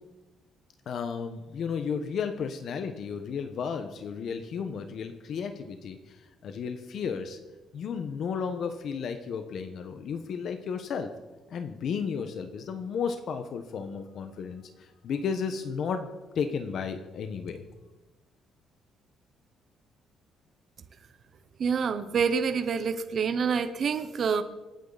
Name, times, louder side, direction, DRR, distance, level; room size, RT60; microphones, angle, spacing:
voice 1, 0.9-7.4 7.7-11.2 11.5-17.6, left 6 dB, 55° left, 8 dB, 1.2 m, -33 dB
voice 2, 21.6-24.4, right 6 dB, 45° right, 10 dB, 0.9 m, -27 dB
27.0 x 9.3 x 4.1 m, 1.1 s
cardioid pair, 135°, 0 cm